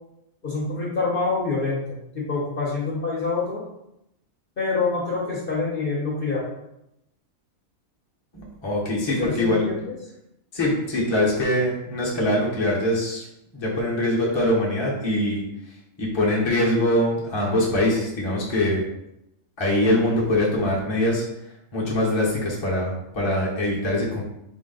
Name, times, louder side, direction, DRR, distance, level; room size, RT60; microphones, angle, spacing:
voice 1, 0.4-3.6 4.6-6.4 9.1-9.9, left 3 dB, 45° left, -5 dB, 1.1 m, -26 dB
voice 2, 8.3-9.7 10.5-13.3 13.5-15.4 16.0-18.8 19.6-21.2 21.7-24.2, left 1 dB, 20° left, -5 dB, 0.9 m, -23 dB
4.6 x 2.4 x 3.8 m, 0.83 s
omnidirectional pair, 1.4 m